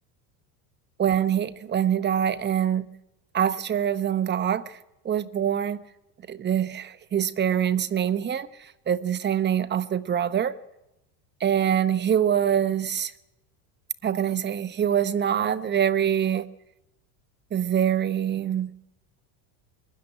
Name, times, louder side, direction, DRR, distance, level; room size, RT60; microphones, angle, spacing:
voice 1, 1.0-2.9 3.3-4.8 5.0-5.8 6.3-10.5 11.4-13.1 14.0-16.5 17.5-18.7, right 9 dB, 20° right, 0.8 m, -24 dB
22.5 x 13.0 x 9.7 m
supercardioid pair, 130°, 48 cm